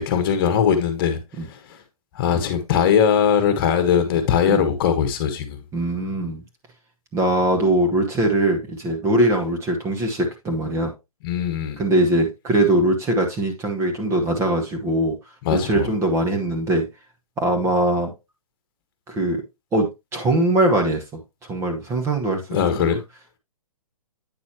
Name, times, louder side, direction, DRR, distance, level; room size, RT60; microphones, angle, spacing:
voice 1, 0.0-1.2 1.5-1.6 2.1-5.6 11.2-11.8 15.4-15.9 22.5-23.0, left 7 dB, 40° left, 1.4 m, -20 dB
voice 2, 5.7-6.4 7.1-10.9 11.8-15.2 15.5-16.9 17.4-18.1 19.1-19.4 19.7-21.0 21.5-22.9, right 1 dB, 15° right, 1.3 m, -21 dB
9.0 x 6.2 x 3.0 m
hypercardioid pair, 140°, 19 cm